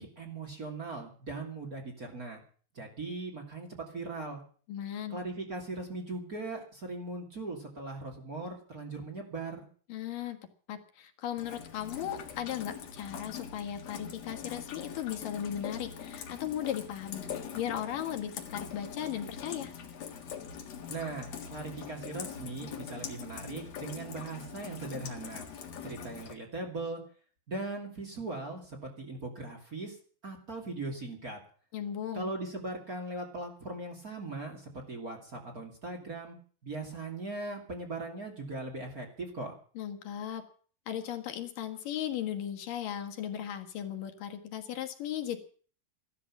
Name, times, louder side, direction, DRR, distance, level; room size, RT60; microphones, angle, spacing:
voice 1, 0.0-2.4 2.7-4.4 5.1-9.7 20.9-25.5 25.8-27.0 27.5-30.0 30.2-31.4 32.1-36.4 36.6-39.5, right 2 dB, 30° right, 2 dB, 2.7 m, -39 dB
voice 2, 4.7-5.2 9.9-10.4 10.7-19.7 31.7-32.3 39.8-40.4 40.9-45.4, left 10 dB, 75° left, 6 dB, 3.2 m, -37 dB
Rain, 11.4-26.3, left 7 dB, 55° left, 2.7 m, -43 dB
14.5 x 12.5 x 7.2 m, 0.44 s
omnidirectional pair, 3.9 m